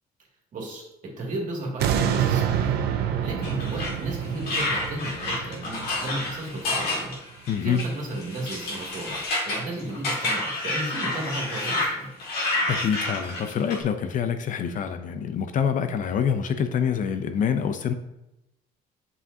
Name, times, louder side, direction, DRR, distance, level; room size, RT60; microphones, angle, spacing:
voice 1, 0.5-2.7 3.2-7.2 7.6-9.1 9.5-12.1, right 1 dB, 50° right, -2 dB, 2.2 m, -34 dB
sound 1, 1.8-6.9 7.4-7.5, right 8 dB, 75° right, 0.6 m, -27 dB
sound 2, 3.4-11.9 12.2-13.8, left 2 dB, 65° left, 2.0 m, -29 dB
voice 2, 7.5-7.8 12.7-17.9, left 7 dB, 50° left, 9 dB, 0.6 m, -26 dB
7.3 x 5.7 x 2.7 m, 0.89 s
cardioid pair, 110°, 17 cm